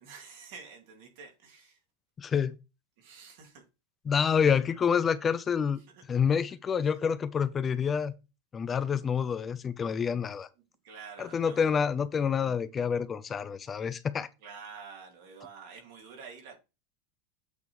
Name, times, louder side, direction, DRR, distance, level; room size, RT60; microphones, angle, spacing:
voice 1, 0.0-1.8 3.0-3.6 5.9-6.1 10.8-11.8 14.4-16.6, right 5 dB, 65° right, 3.0 m, -48 dB
voice 2, 2.2-2.5 4.1-5.8 6.1-8.1 8.5-10.5 11.2-14.3, left 7 dB, 25° left, 0.6 m, -28 dB
8.3 x 3.5 x 4.8 m
supercardioid pair, 125°, 0 cm